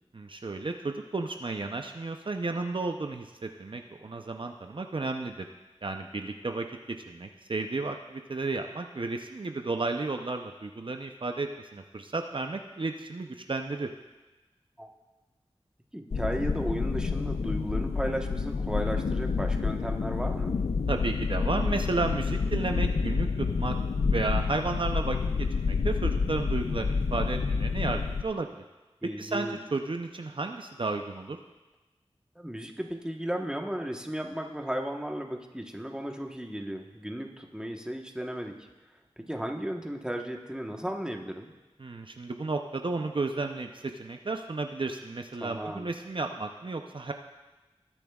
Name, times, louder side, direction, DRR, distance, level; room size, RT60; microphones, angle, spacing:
voice 1, 0.1-5.5 5.8-6.7 7.1-13.9 20.9-23.7 24.1-28.5 29.2-31.4 41.8-47.1, right 3 dB, 55° right, 4 dB, 0.6 m, -33 dB
voice 2, 15.9-20.6 29.0-29.6 32.3-38.6 39.2-41.5 45.4-45.9, equal, 5° right, 2 dB, 1.2 m, -35 dB
sound 1, 16.1-28.2, left 4 dB, 75° left, 0.5 m, -28 dB
19.5 x 8.8 x 2.4 m, 1.2 s
wide cardioid pair, 40°, 11 cm